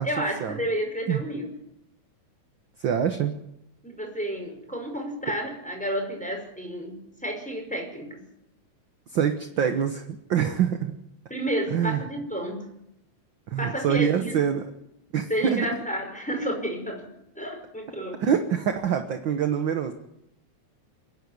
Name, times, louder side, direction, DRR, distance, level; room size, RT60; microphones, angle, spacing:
voice 1, 0.0-1.5 3.8-8.2 11.3-12.6 13.6-14.4 15.3-17.0 17.4-18.2, right 1 dB, ahead, 1 dB, 5.3 m, -31 dB
voice 2, 2.8-3.3 9.1-10.9 11.7-12.0 13.5-14.6 15.1-15.7 18.2-19.9, right 8 dB, 55° right, 7 dB, 1.5 m, -25 dB
29.0 x 11.0 x 9.6 m, 0.84 s
omnidirectional pair, 3.3 m